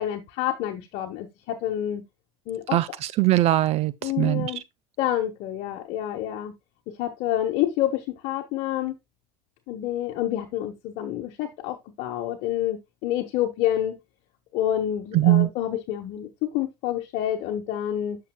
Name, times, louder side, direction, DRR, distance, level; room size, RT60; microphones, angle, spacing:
voice 1, 0.0-2.0 2.5-2.8 4.0-4.6 5.0-6.5 7.0-8.9 9.7-14.0 14.5-18.2, left 12 dB, 60° left, 1.2 m, -28 dB
voice 2, 2.7-4.5 15.1-15.5, right 15 dB, 45° right, 0.5 m, -21 dB
8.4 x 6.5 x 2.3 m
supercardioid pair, 115°, 15 cm